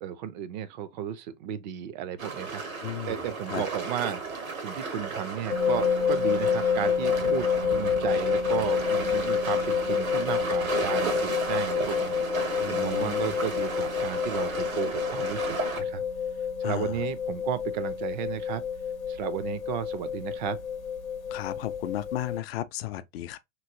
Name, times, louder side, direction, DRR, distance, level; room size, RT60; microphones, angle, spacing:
voice 1, 0.0-12.1 12.7-16.0 16.6-18.6 19.1-20.6, right 10 dB, 35° right, 0.4 m, -34 dB
sound 1, 2.2-15.8, right 4 dB, 85° right, 1.1 m, -34 dB
voice 2, 2.8-3.2 3.5-3.6 12.6-13.3 16.6-16.9 21.3-23.4, left 13 dB, 50° left, 0.5 m, -34 dB
sound 2, 5.5-22.4, left 7 dB, 85° left, 0.8 m, -28 dB
3.0 x 2.8 x 2.6 m
hypercardioid pair, 105°, 40 cm